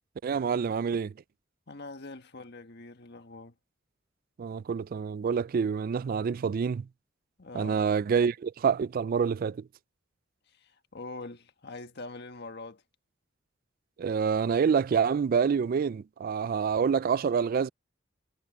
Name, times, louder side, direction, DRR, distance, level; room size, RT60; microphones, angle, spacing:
voice 1, 0.2-1.1 4.4-6.9 7.5-9.7 14.0-17.7, right 6 dB, 45° right, 0.3 m, -27 dB
voice 2, 1.7-3.5 7.4-7.8 10.6-12.8, left 2 dB, 60° left, 1.6 m, -43 dB
head